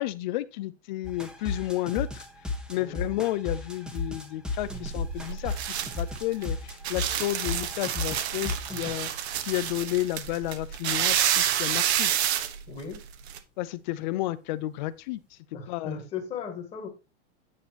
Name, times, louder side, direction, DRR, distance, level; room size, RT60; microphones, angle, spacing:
voice 1, 0.0-2.3 2.7-9.1 9.4-12.1 13.6-15.2 15.7-16.0, left 16 dB, 40° left, 0.7 m, -31 dB
sound 1, 1.0-9.0, left 3 dB, ahead, 1.0 m, -34 dB
sound 2, 4.6-13.4, right 10 dB, 65° right, 1.3 m, -29 dB
voice 2, 12.7-13.0 15.5-16.9, left 6 dB, 20° left, 1.9 m, -37 dB
9.5 x 7.0 x 2.9 m
supercardioid pair, 165°, 34 cm